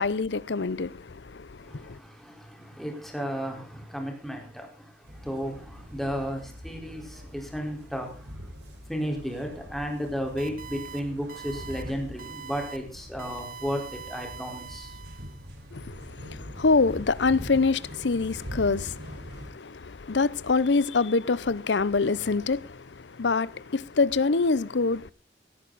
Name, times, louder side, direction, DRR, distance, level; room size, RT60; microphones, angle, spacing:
voice 1, 0.0-2.0 15.7-25.1, left 4 dB, 80° left, 0.7 m, -26 dB
voice 2, 1.6-8.5 8.8-15.0, equal, ahead, 4.4 m, -34 dB
sound 1, 5.0-19.5, equal, 70° right, 5.3 m, -43 dB
sound 2, 10.4-11.0 11.3-11.8 12.2-12.8 13.2-15.5, right 7 dB, 55° right, 1.6 m, -43 dB
17.5 x 14.0 x 4.1 m
head